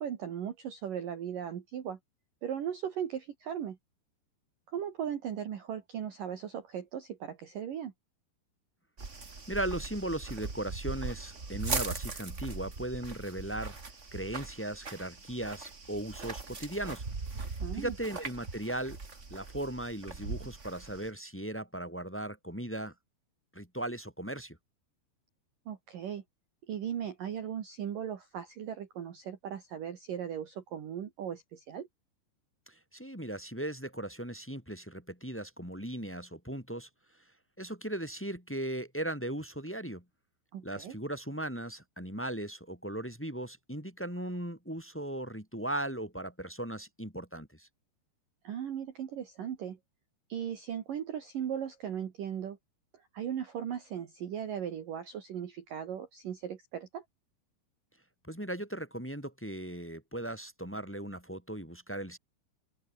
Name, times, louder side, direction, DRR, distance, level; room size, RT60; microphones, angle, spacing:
voice 1, 0.0-2.0 2.4-3.8 4.7-7.9 17.6-17.9 25.7-26.2 26.7-31.9 40.5-41.0 48.4-49.8 50.3-52.6 52.9-57.0, right 9 dB, 55° right, 3.2 m, -37 dB
sound 1, 9.0-21.1, right 4 dB, 25° right, 1.5 m, -40 dB
voice 2, 9.5-13.8 14.1-17.0 17.4-19.0 19.3-22.9 23.5-24.6 32.7-36.9 37.6-40.0 40.6-47.7 58.2-62.2, right 1 dB, 5° left, 5.0 m, -37 dB
open air
omnidirectional pair, 5.3 m